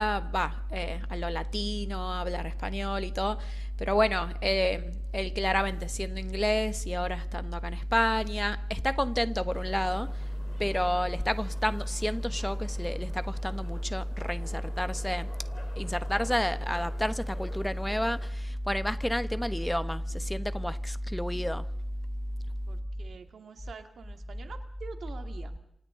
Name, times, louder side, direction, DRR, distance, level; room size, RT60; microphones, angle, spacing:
voice 1, 0.0-10.2 10.6-15.3 15.8-21.6, equal, 5° left, 1.1 m, -29 dB
sound 1, 9.5-18.3, left 2 dB, 40° left, 3.6 m, -50 dB
voice 2, 22.7-25.6, right 5 dB, 85° right, 2.0 m, -46 dB
28.5 x 26.5 x 3.8 m
cardioid pair, 70°, 0 cm